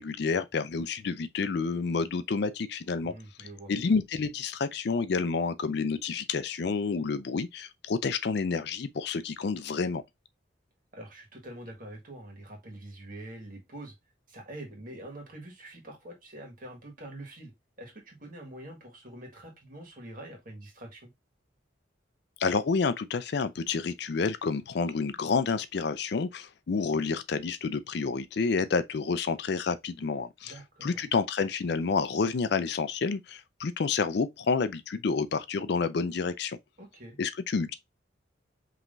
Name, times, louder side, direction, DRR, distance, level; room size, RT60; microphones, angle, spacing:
voice 1, 0.0-3.1 3.7-10.0 22.4-30.5 30.8-36.6 37.2-37.7, left 4 dB, 55° left, 0.4 m, -29 dB
voice 2, 3.0-3.7 10.9-13.9 14.3-17.5 17.8-21.1 30.4-31.0 36.8-37.2, right 1 dB, 45° right, 1.6 m, -45 dB
5.4 x 3.0 x 2.6 m
head